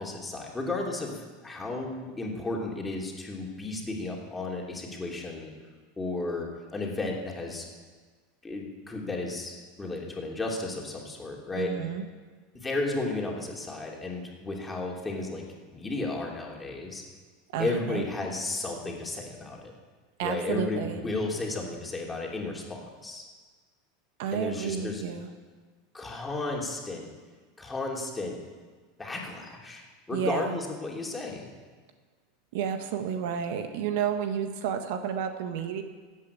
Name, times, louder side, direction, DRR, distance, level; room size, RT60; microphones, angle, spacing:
voice 1, 0.0-5.5 6.0-7.6 8.4-11.8 12.6-15.4 15.7-17.0 17.6-19.7 20.2-23.3 24.3-25.0 25.9-27.1 27.6-28.4 29.0-31.5, left 2 dB, 15° left, -1 dB, 3.0 m, -33 dB
voice 2, 11.6-12.0 17.5-18.0 20.2-21.0 24.2-25.3 30.1-30.6 32.5-35.8, right 8 dB, 70° right, 7 dB, 1.4 m, -31 dB
14.0 x 8.5 x 8.5 m, 1.5 s
supercardioid pair, 115°, 0 cm